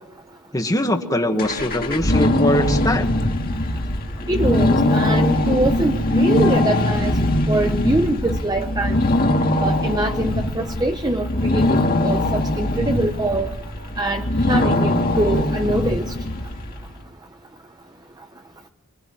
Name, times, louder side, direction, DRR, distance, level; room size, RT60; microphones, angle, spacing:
voice 1, 0.5-3.1, left 1 dB, 15° left, 5 dB, 1.9 m, -22 dB
sound 1, 1.4-16.8, left 1 dB, 40° left, 2.2 m, -21 dB
voice 2, 4.3-7.1 7.5-9.0 9.6-13.5 14.0-16.1, right 2 dB, 20° right, 5 dB, 0.9 m, -24 dB
26.0 x 24.0 x 9.2 m, 1.1 s
head